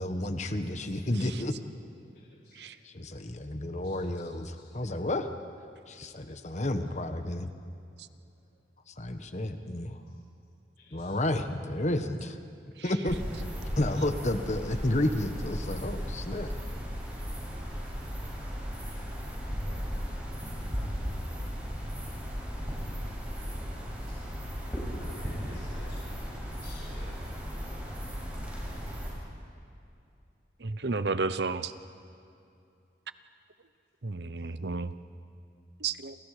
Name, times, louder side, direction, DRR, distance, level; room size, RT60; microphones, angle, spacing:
voice 1, 0.0-1.5 2.8-5.3 5.9-7.5 9.0-10.0 10.9-12.4 12.8-13.2 13.8-16.5, left 1 dB, 40° left, 7 dB, 1.3 m, -31 dB
voice 2, 2.4-2.8 3.8-3.9 9.9-10.0 11.0-11.1 24.0-24.1 24.9-27.1, left 1 dB, 60° left, -8 dB, 5.8 m, -51 dB
sound 1, 13.1-29.1, equal, 10° right, 7.2 m, -36 dB
voice 3, 30.6-31.7 34.0-34.9 35.8-36.2, right 4 dB, 65° right, 13 dB, 0.9 m, -32 dB
29.5 x 27.5 x 5.0 m, 2.6 s
head